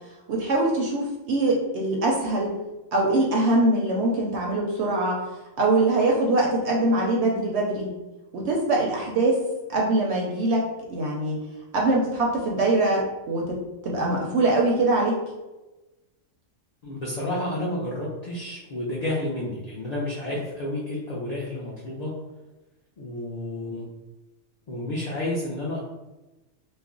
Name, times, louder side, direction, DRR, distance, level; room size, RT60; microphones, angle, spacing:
voice 1, 0.3-2.5 2.9-5.2 5.6-7.9 8.3-9.4 9.7-10.6 10.9-11.4 11.7-15.2, right 2 dB, 65° right, -2 dB, 0.7 m, -23 dB
voice 2, 16.8-22.1 23.0-23.9 24.7-25.8, left 1 dB, 70° left, -6 dB, 0.3 m, -30 dB
2.4 x 2.1 x 3.6 m, 1.1 s
omnidirectional pair, 1.4 m